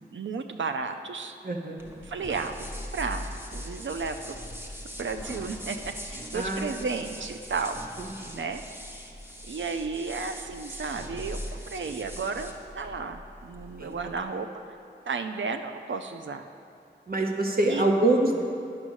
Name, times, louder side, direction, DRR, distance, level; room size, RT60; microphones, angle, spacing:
voice 1, 0.0-1.4 2.0-2.6 2.9-3.3 3.5-4.4 5.0-7.8 8.3-8.6 9.5-11.4 11.7-14.5 15.1-16.5 17.7-17.8, right 4 dB, 85° right, 7 dB, 0.5 m, -33 dB
voice 2, 1.4-1.9 6.3-6.7 8.2-8.4 13.8-14.2 17.1-18.4, right 2 dB, 55° right, 1 dB, 0.8 m, -25 dB
sound 1, 1.8-14.2, equal, 10° right, 1.1 m, -41 dB
9.7 x 6.1 x 6.3 m, 2.5 s
wide cardioid pair, 60°, 19 cm